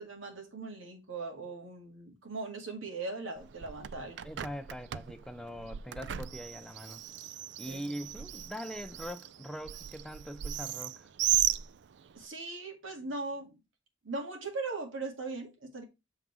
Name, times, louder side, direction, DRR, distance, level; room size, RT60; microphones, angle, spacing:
voice 1, 0.0-4.2 7.7-7.8 12.1-13.6 14.0-15.8, right 3 dB, 85° right, 2.0 m, -39 dB
Bird, 3.4-12.3, right 11 dB, 60° right, 0.4 m, -36 dB
voice 2, 4.2-7.0 7.6-11.1, equal, 5° left, 0.4 m, -42 dB
7.6 x 3.9 x 4.6 m
head